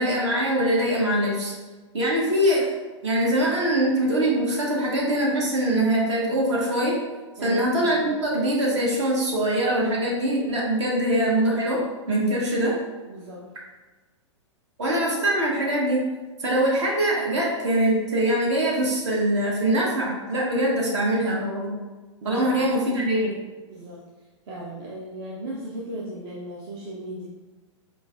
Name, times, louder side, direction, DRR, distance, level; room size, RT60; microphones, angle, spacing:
voice 1, 0.0-1.5 1.9-2.7 3.0-7.0 7.4-12.7 14.8-16.0 16.4-21.7 22.2-23.3, right 1 dB, 65° right, -3 dB, 1.3 m, -23 dB
voice 2, 7.4-8.1 13.1-13.5 22.2-22.6 23.7-24.1 24.5-27.3, right 1 dB, 50° right, -4 dB, 0.6 m, -36 dB
5.8 x 2.4 x 2.4 m, 1.3 s
hypercardioid pair, 110°, 16 cm